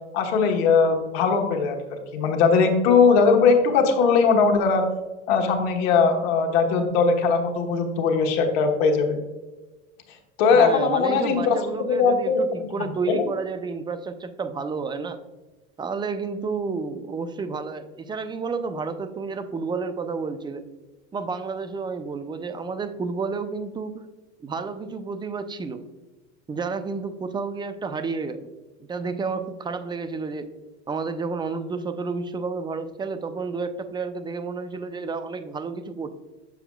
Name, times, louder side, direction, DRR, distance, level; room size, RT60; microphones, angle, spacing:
voice 1, 0.1-4.9 5.3-9.2 10.4-11.6 11.9-13.3, left 5 dB, 65° left, 4 dB, 1.2 m, -20 dB
voice 2, 10.5-15.2 15.8-20.6 21.1-24.0 24.4-25.9 26.5-28.5 28.9-30.5 30.9-36.1, right 4 dB, 15° right, 10 dB, 0.4 m, -30 dB
7.0 x 6.9 x 2.3 m, 1.2 s
hypercardioid pair, 95°, 34 cm